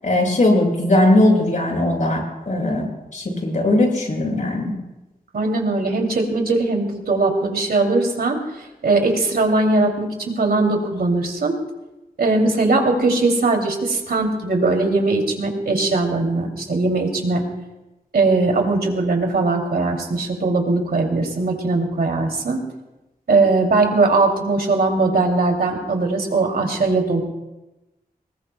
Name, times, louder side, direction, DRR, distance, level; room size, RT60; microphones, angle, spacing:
voice 1, 0.0-4.7, left 1 dB, 55° left, 0 dB, 6.4 m, -19 dB
voice 2, 5.3-8.4 8.8-11.6 12.2-17.4 18.1-22.6 23.3-27.2, right 3 dB, 85° right, 2 dB, 2.7 m, -20 dB
24.5 x 20.5 x 2.3 m, 1.0 s
wide cardioid pair, 85°, 16 cm